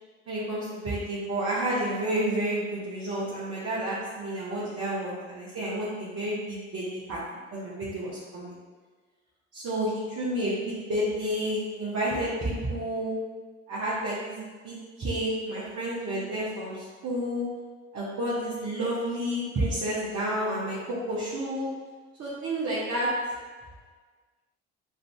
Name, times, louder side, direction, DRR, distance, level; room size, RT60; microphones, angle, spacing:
voice 1, 0.3-7.2 7.5-8.5 9.5-13.1 13.7-17.4 17.9-21.7 22.2-23.1, right 1 dB, 45° right, -9 dB, 1.2 m, -30 dB
6.5 x 2.6 x 2.3 m, 1.4 s
hypercardioid pair, 50°, 36 cm